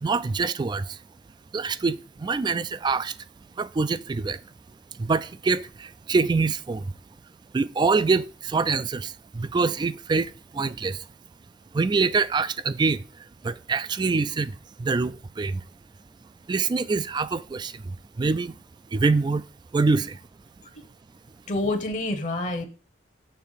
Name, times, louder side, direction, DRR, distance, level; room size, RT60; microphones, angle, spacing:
voice 1, 0.0-1.0 1.5-3.1 3.6-4.4 5.0-6.9 7.5-11.0 11.7-13.0 13.4-15.6 16.5-18.5 18.9-19.4 19.7-20.2, right 4 dB, 25° right, 0.3 m, -25 dB
voice 2, 21.5-22.7, left 2 dB, 45° left, 0.9 m, -27 dB
6.7 x 3.4 x 5.5 m
head